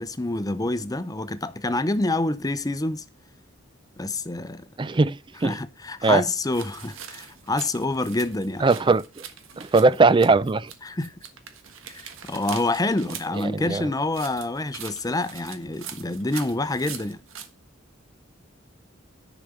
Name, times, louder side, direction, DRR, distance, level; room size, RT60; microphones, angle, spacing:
voice 1, 0.0-3.0 4.0-4.7 5.4-8.7 10.8-11.1 11.9-17.2, left 2 dB, 20° left, 0.7 m, -27 dB
voice 2, 4.8-5.6 6.0-6.2 8.6-9.0 9.6-10.7 13.4-13.9, right 3 dB, 25° right, 0.4 m, -20 dB
sound 1, 6.5-10.8 11.0-13.4 14.1-17.5, right 8 dB, 85° right, 1.4 m, -41 dB
10.5 x 5.1 x 6.5 m
head